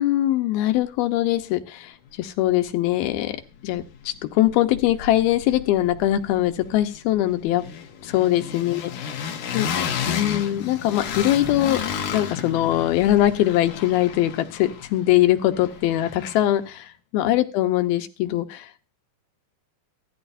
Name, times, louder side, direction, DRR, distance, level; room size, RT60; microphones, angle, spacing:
voice 1, 0.0-1.9 2.2-3.4 3.6-7.7 8.0-8.9 9.5-9.7 10.0-11.8 12.1-18.7, left 14 dB, 90° left, 8 dB, 2.9 m, -22 dB
sound 1, 2.7-2.8 3.0-4.2 4.4-16.6, left 7 dB, 65° left, 2.9 m, -33 dB
16.5 x 13.5 x 2.7 m, 0.30 s
omnidirectional pair, 4.3 m